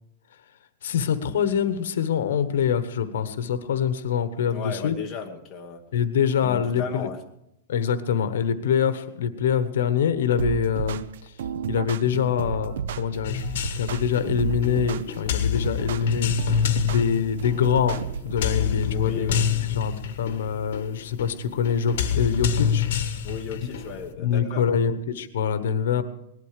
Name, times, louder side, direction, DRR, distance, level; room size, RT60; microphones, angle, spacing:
voice 1, 0.8-5.0 5.9-7.1 7.7-11.3 11.7-13.5 13.8-19.3 19.6-22.9 24.2-26.0, left 8 dB, 75° left, 12 dB, 1.1 m, -25 dB
voice 2, 4.5-5.8 6.4-7.2 18.9-19.5 23.2-24.8 26.0-26.1, left 6 dB, 15° left, 0 dB, 1.3 m, -35 dB
sound 1, 10.4-18.4, right 8 dB, 65° right, 0.6 m, -32 dB
sound 2, 13.2-24.1, left 8 dB, 55° left, 1.7 m, -27 dB
19.0 x 12.0 x 5.0 m, 0.80 s
supercardioid pair, 175°, 0 cm